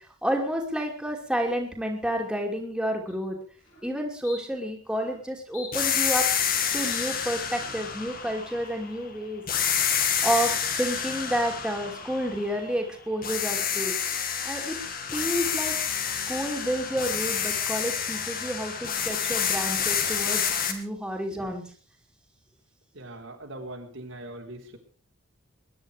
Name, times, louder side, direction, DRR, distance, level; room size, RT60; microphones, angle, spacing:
voice 1, 0.2-3.4 3.8-6.3 6.7-9.4 10.2-13.9 14.4-14.8 15.1-15.7 16.1-21.6, equal, 5° right, 0 dB, 2.8 m, -30 dB
sound 1, 3.1-3.2 3.6-3.9 4.2-4.4 4.9-5.2 5.5-6.6 6.9-7.0 7.5-7.9, left 4 dB, 85° left, 7.7 m, -46 dB
sound 2, 5.7-9.0 9.5-12.8 13.2-20.7, left 7 dB, 45° left, 2.2 m, -28 dB
voice 2, 22.9-24.8, right 1 dB, 80° right, 1 dB, 3.9 m, -41 dB
21.5 x 10.5 x 5.1 m, 0.43 s
head